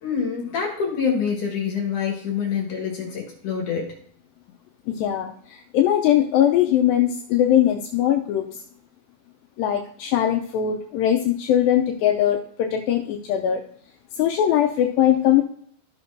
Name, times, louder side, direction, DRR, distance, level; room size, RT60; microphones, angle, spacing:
voice 1, 0.0-3.9, left 6 dB, 60° left, -2 dB, 2.7 m, -26 dB
voice 2, 4.9-8.6 9.6-13.6 14.2-15.4, left 10 dB, 80° left, 3 dB, 2.3 m, -21 dB
14.5 x 6.1 x 2.6 m, 0.63 s
omnidirectional pair, 4.3 m